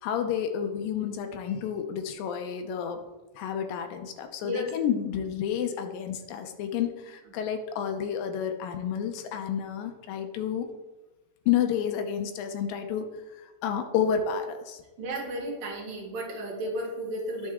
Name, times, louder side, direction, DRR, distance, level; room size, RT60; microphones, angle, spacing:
voice 1, 0.0-3.0 3.4-10.7 11.5-13.1 13.4-14.8, left 8 dB, 75° left, 6 dB, 2.2 m, -30 dB
voice 2, 15.0-17.5, right 1 dB, 65° right, -1 dB, 3.1 m, -33 dB
10.5 x 6.4 x 3.6 m, 1.1 s
omnidirectional pair, 4.6 m